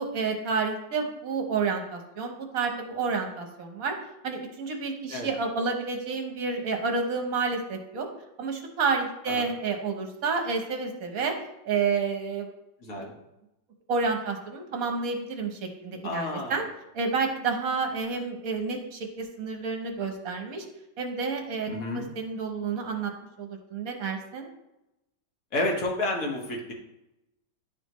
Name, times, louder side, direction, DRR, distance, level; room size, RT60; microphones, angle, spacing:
voice 1, 0.0-4.0 4.2-8.1 8.4-11.3 11.6-12.5 13.0-13.1 13.9-16.7 16.9-20.7 21.0-23.1 23.4-24.5, right 4 dB, 55° right, 3 dB, 1.2 m, -30 dB
voice 2, 16.0-16.6 21.7-22.1 25.5-26.7, left 2 dB, 50° left, -1 dB, 1.6 m, -30 dB
11.0 x 4.1 x 3.0 m, 0.90 s
omnidirectional pair, 2.1 m